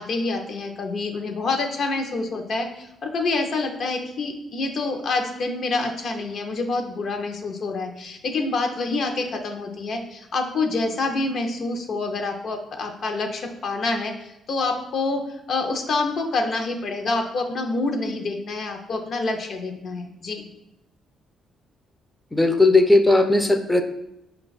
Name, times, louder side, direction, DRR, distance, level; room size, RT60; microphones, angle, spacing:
voice 1, 0.0-15.2 15.5-20.5, left 3 dB, 60° left, 4 dB, 0.6 m, -27 dB
voice 2, 22.3-23.8, left 2 dB, 10° left, 8 dB, 0.4 m, -17 dB
4.9 x 2.3 x 3.9 m, 0.86 s
cardioid pair, 90°, 0 cm